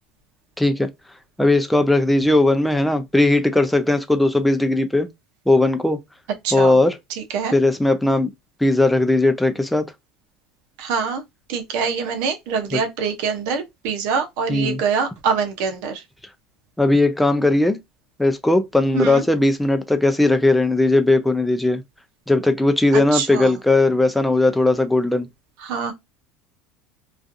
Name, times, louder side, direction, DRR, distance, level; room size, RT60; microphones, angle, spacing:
voice 1, 0.6-0.9 1.4-5.1 5.5-6.0 6.5-7.0 7.5-8.3 8.6-9.9 12.7-12.8 14.5-14.8 16.8-17.8 18.2-21.8 22.3-25.3, left 2 dB, 5° left, 0.4 m, -18 dB
voice 2, 6.4-6.8 7.3-7.5 10.8-11.2 11.5-16.0 18.9-19.2 22.9-23.5 25.6-25.9, right 6 dB, 70° right, 0.7 m, -24 dB
2.4 x 2.4 x 2.6 m
supercardioid pair, 120°, 0 cm